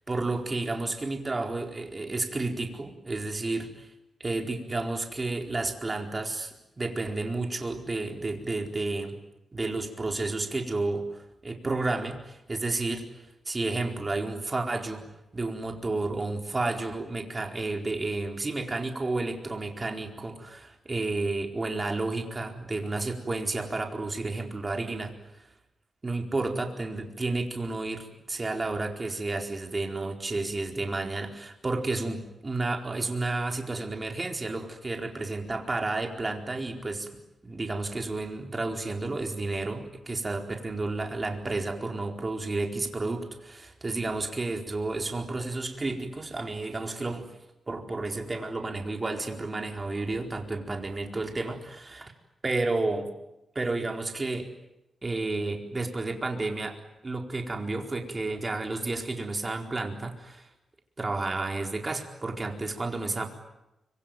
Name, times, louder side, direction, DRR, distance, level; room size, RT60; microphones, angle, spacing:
voice 1, 0.1-3.9 4.2-9.1 9.5-13.1 13.5-15.1 15.3-25.1 26.0-37.1 37.4-47.2 47.7-52.1 52.4-53.1 53.5-54.5 55.0-56.8 57.0-60.5 61.0-63.3, right 2 dB, 30° right, 3 dB, 4.4 m, -31 dB
25.0 x 25.0 x 9.3 m, 0.93 s
cardioid pair, 90°, 0 cm